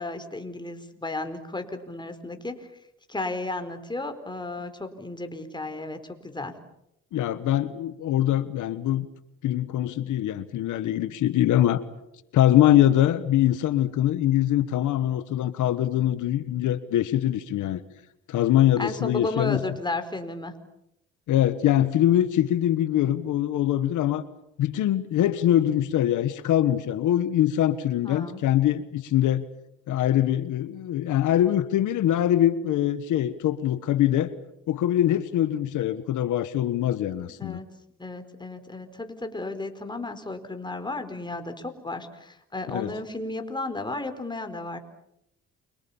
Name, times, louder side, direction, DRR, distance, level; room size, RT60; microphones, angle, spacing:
voice 1, 0.0-2.8 3.1-6.5 18.8-20.5 28.0-28.4 37.1-37.6 38.0-44.8, left 2 dB, 15° left, 7 dB, 4.3 m, -34 dB
voice 2, 7.1-9.1 9.4-11.8 12.3-17.8 18.3-19.6 21.3-24.2 24.6-29.4 29.9-34.3 34.7-37.6 42.7-42.9, left 12 dB, 80° left, 13 dB, 1.4 m, -23 dB
29.5 x 25.0 x 7.1 m, 0.82 s
cardioid pair, 90°, 30 cm